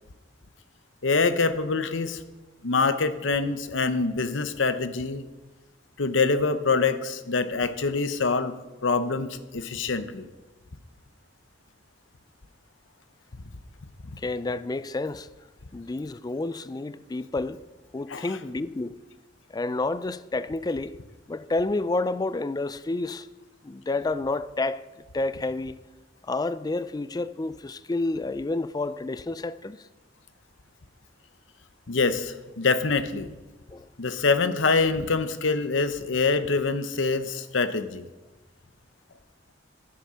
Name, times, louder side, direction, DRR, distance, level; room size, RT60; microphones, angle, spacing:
voice 1, 1.0-2.2 2.6-5.2 6.0-8.5 8.8-10.3 14.0-14.2 18.1-18.4 31.9-33.3 34.0-38.1, left 4 dB, 85° left, 0.9 m, -25 dB
voice 2, 14.2-15.3 15.7-17.6 17.9-19.0 19.5-21.0 21.3-23.3 23.6-24.9 25.1-25.8 26.2-29.8 33.7-33.9, left 2 dB, 20° left, 0.4 m, -29 dB
11.5 x 10.5 x 5.6 m
head